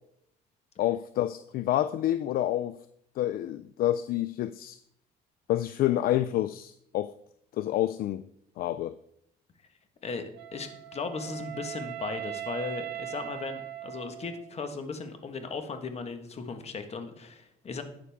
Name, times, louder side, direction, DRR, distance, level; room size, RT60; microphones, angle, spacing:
voice 1, 0.8-2.7 3.2-4.8 5.5-7.1 7.6-8.2 8.6-9.0, left 13 dB, 60° left, 14 dB, 0.4 m, -28 dB
Wind instrument woodwind instrument, 10.4-14.6, right 12 dB, 80° right, 0.8 m, -39 dB
voice 2, 10.5-17.8, left 4 dB, 40° left, 7 dB, 1.5 m, -37 dB
11.5 x 8.3 x 3.6 m, 0.75 s
cardioid pair, 110°, 17 cm